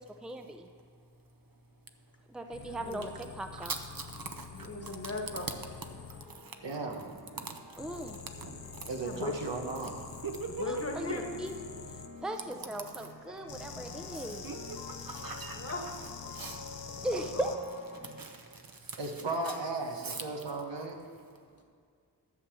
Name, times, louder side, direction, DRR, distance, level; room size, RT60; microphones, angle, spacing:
voice 1, 0.2-0.6 2.3-3.7 7.8-8.2 10.7-11.5 12.2-14.5 17.0-17.5, right 1 dB, ahead, 5 dB, 0.6 m, -38 dB
sound 1, 2.5-6.3 7.8-12.1 13.5-17.6 18.8-19.0, left 6 dB, 85° left, 0.8 m, -46 dB
voice 2, 2.6-3.1 4.5-5.5 9.0-9.4 10.6-11.3 15.5-15.9 17.0-17.5 21.6-21.7, left 2 dB, 35° left, 1 dB, 1.6 m, -38 dB
voice 3, 3.6-4.0 4.4-4.5 6.9-7.5 8.4-8.6 10.2-10.8 14.4-15.7 16.3-16.6 18.2-18.4 20.0-20.2, right 4 dB, 55° right, 5 dB, 0.9 m, -40 dB
sound 2, 5.3-18.2, left 2 dB, 50° left, 1.4 m, -50 dB
voice 4, 6.6-7.0 8.9-10.0 19.0-20.9, right 3 dB, 90° right, 2 dB, 1.3 m, -35 dB
11.0 x 7.0 x 6.3 m, 2.2 s
wide cardioid pair, 55°, 42 cm